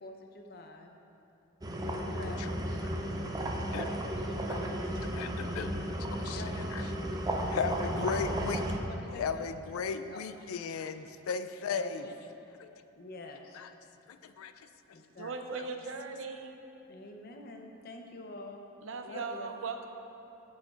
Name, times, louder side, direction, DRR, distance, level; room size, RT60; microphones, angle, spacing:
voice 1, 0.0-0.9 1.8-2.8 4.0-5.0 6.3-6.8 8.4-9.5 10.1-10.2 10.7-10.8 11.7-12.3 13.0-13.6 14.9-15.3 16.9-18.7 19.0-19.6, left 2 dB, 50° left, 3 dB, 0.6 m, -47 dB
sound 1, 1.6-8.8, right 1 dB, 20° right, 0.5 m, -34 dB
voice 2, 2.1-2.5 2.8-3.0 3.7-3.9 4.5-4.6 5.1-5.7 6.2-6.4 6.7-6.8 7.5-8.6 9.1-12.1 12.6-12.7 13.6-13.7 14.1-14.5, left 5 dB, 90° left, 10 dB, 0.4 m, -36 dB
voice 3, 15.2-16.6 18.8-19.9, right 4 dB, 65° right, 5 dB, 0.5 m, -38 dB
11.0 x 6.3 x 2.4 m, 2.8 s
head